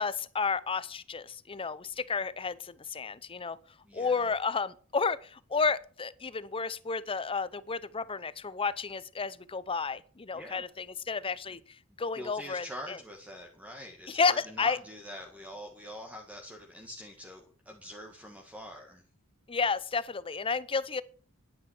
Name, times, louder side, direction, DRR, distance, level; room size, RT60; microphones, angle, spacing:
voice 1, 0.0-3.6 3.9-11.6 12.0-13.0 14.1-14.8 19.5-21.0, left 5 dB, 25° left, 0.6 m, -31 dB
voice 2, 3.8-4.3 10.3-10.7 12.2-19.0, equal, 5° right, 1.7 m, -45 dB
10.5 x 9.5 x 6.4 m
head